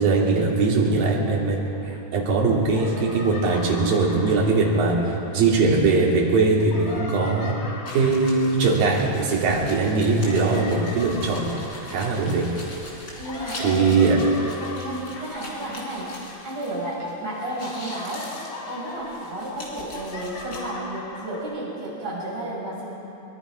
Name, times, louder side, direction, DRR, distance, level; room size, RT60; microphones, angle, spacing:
voice 1, 0.0-5.0 5.3-7.6 7.9-11.5 11.9-12.5 13.6-14.2, right 3 dB, 80° right, -3 dB, 4.3 m, -21 dB
Yandere laughter, 1.7-2.4 2.7-5.9 6.5-17.1 17.3-21.4, left 3 dB, 55° left, 3.6 m, -40 dB
sound 1, 7.9-17.1 17.4-20.7, left 2 dB, 30° left, 3.9 m, -42 dB
voice 2, 13.2-18.3 18.7-22.9, right 1 dB, 50° right, -7 dB, 8.0 m, -32 dB
23.5 x 22.0 x 5.0 m, 2.9 s
omnidirectional pair, 4.0 m